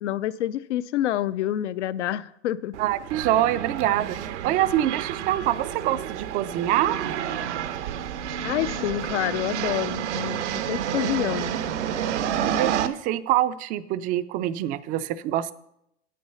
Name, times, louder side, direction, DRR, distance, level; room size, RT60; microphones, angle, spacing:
voice 1, 0.0-2.7 8.4-11.5, left 13 dB, 80° left, 16 dB, 0.6 m, -28 dB
sound 1, 2.7-12.9, right 9 dB, 80° right, 0.9 m, -29 dB
voice 2, 2.8-7.0 12.5-15.5, right 13 dB, 25° right, 14 dB, 0.3 m, -25 dB
8.6 x 8.2 x 5.6 m, 0.78 s
hypercardioid pair, 130°, 35 cm